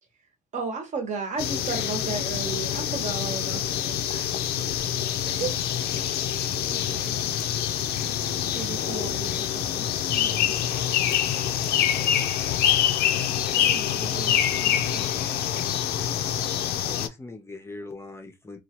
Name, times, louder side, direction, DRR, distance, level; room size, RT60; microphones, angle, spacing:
voice 1, 0.5-4.4 5.2-5.5 6.0-6.1 10.1-10.5, right 4 dB, 45° right, 0.9 m, -33 dB
sound 1, 1.4-17.1, left 10 dB, 70° left, 0.4 m, -26 dB
voice 2, 6.7-7.3 8.4-9.9 13.5-15.1, right 7 dB, 80° right, 0.7 m, -41 dB
voice 3, 7.7-8.3 16.8-18.6, left 2 dB, 15° left, 0.5 m, -41 dB
2.9 x 2.3 x 2.9 m
cardioid pair, 110°, 17 cm